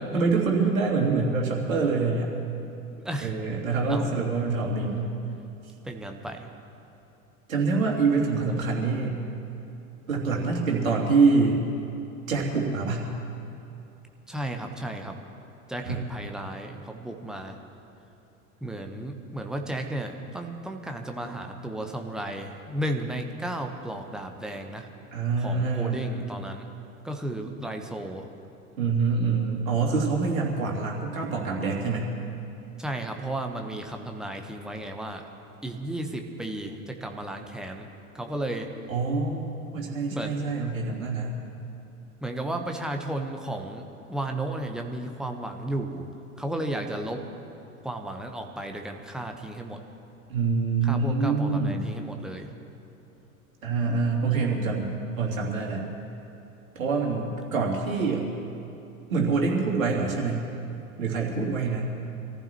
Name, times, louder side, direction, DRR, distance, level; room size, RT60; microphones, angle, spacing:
voice 1, 0.1-2.3 3.2-5.1 7.5-9.2 10.1-11.6 12.3-13.1 15.8-16.0 25.1-26.1 28.8-32.1 38.9-41.4 50.3-51.8 53.6-55.8 56.7-58.3 59.1-60.4 61.0-61.9, right 4 dB, 65° right, -2 dB, 3.1 m, -25 dB
voice 2, 5.8-6.5 14.3-15.2 15.7-17.6 18.6-24.9 25.4-26.7 27.0-28.3 32.8-35.3 35.6-37.9 38.1-38.7 40.1-40.3 42.2-43.8 44.1-46.1 46.4-47.2 47.8-49.8 50.8-52.5, right 1 dB, ahead, 3 dB, 1.1 m, -34 dB
25.0 x 14.5 x 3.1 m, 2.8 s
figure-of-eight pair, 85°, 43 cm